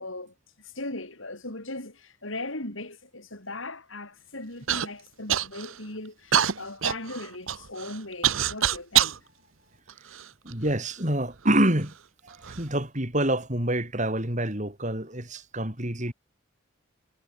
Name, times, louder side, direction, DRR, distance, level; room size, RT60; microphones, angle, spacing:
voice 1, 0.0-9.2, left 2 dB, 70° left, 6.6 m, -38 dB
Human voice / Cough, 4.7-4.9 5.3-5.8 6.3-9.2 9.9-10.7 11.5-11.6 12.3-12.6, right 10 dB, 75° right, 1.0 m, -26 dB
voice 2, 10.4-11.9 12.5-16.1, right 1 dB, 35° right, 5.2 m, -26 dB
head